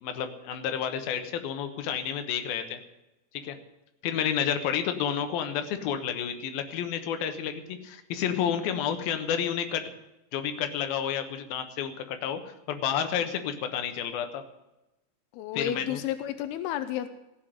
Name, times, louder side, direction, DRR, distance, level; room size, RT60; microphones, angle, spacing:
voice 1, 0.0-2.8 3.3-3.6 4.0-9.8 10.3-12.4 12.7-14.4 15.5-16.0, left 8 dB, 65° left, 7 dB, 2.6 m, -30 dB
voice 2, 15.3-17.1, left 11 dB, 85° left, 10 dB, 2.3 m, -31 dB
15.5 x 7.8 x 7.9 m, 0.97 s
omnidirectional pair, 5.3 m